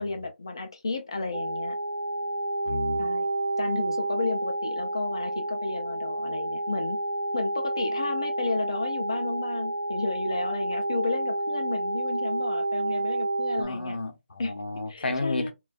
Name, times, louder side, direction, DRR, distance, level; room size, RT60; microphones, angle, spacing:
voice 1, 0.0-1.8 3.0-3.3 3.6-7.0 7.3-14.0 14.4-14.5 14.9-15.5, left 3 dB, 25° left, 0.3 m, -32 dB
sound 1, 1.3-13.6, right 1 dB, 55° right, 0.4 m, -29 dB
voice 2, 2.7-3.1 13.6-15.5, left 2 dB, 55° left, 0.7 m, -32 dB
2.3 x 2.2 x 2.4 m
figure-of-eight pair, 170°, 7 cm